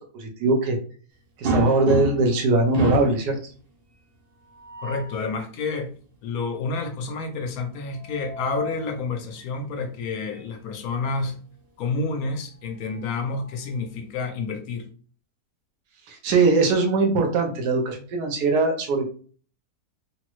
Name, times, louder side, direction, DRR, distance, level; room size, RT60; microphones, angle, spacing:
voice 1, 0.1-0.8 1.4-3.4 16.1-19.1, right 3 dB, 85° right, 2 dB, 1.3 m, -21 dB
sound 1, 1.4-2.4 2.7-3.2 4.4-5.2 7.9-8.9 10.3-10.5 10.9-11.0 12.5-13.7, right 2 dB, 50° right, 0.7 m, -30 dB
voice 2, 4.8-5.9 6.2-11.4 11.8-14.9, left 4 dB, 75° left, 6 dB, 1.0 m, -29 dB
3.6 x 2.0 x 2.9 m, 0.42 s
omnidirectional pair, 1.7 m